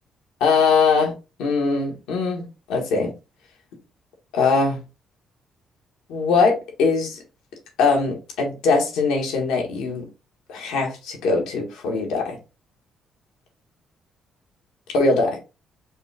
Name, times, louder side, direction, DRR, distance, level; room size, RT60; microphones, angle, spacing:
voice 1, 0.4-1.1 1.4-3.1 4.3-4.8 6.1-7.2 7.8-10.1 10.5-12.4 14.9-15.4, left 4 dB, 90° left, 1 dB, 1.4 m, -21 dB
5.3 x 2.4 x 3.4 m, 0.30 s
cardioid pair, 80°, 0 cm